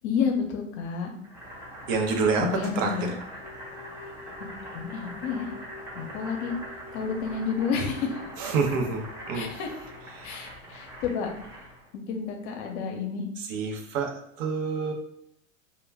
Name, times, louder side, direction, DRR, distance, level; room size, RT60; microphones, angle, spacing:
voice 1, 0.0-1.1 2.4-3.1 4.4-4.5 4.7-5.5 5.9-6.5 6.9-8.2 9.3-9.7 10.2-11.3 11.9-13.2, left 6 dB, 55° left, 3 dB, 0.7 m, -30 dB
Boiling, 1.2-11.9, equal, 5° right, 0.7 m, -43 dB
voice 2, 1.9-2.5 2.8-2.9 8.4-9.5 10.1-10.4 13.5-14.9, right 5 dB, 65° right, 3 dB, 0.7 m, -27 dB
sound 1, 3.4-10.2, left 3 dB, 15° left, 0.4 m, -49 dB
2.2 x 2.2 x 3.3 m, 0.74 s
hypercardioid pair, 105°, 41 cm